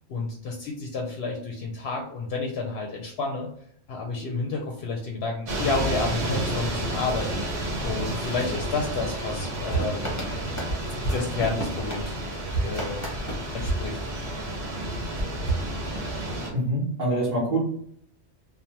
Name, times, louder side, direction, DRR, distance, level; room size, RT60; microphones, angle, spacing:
voice 1, 0.1-3.5 3.9-7.4 7.8-10.0 11.1-12.2 12.6-13.0 13.5-14.0, left 3 dB, 65° left, 0 dB, 0.7 m, -30 dB
sound 1, 5.5-16.5, right 1 dB, 70° right, 1.1 m, -31 dB
sound 2, 9.7-14.6 15.1-16.4, right 2 dB, 15° left, 0.7 m, -32 dB
voice 2, 16.5-17.6, right 1 dB, 40° right, -6 dB, 0.8 m, -25 dB
2.7 x 2.0 x 3.1 m, 0.65 s
omnidirectional pair, 1.2 m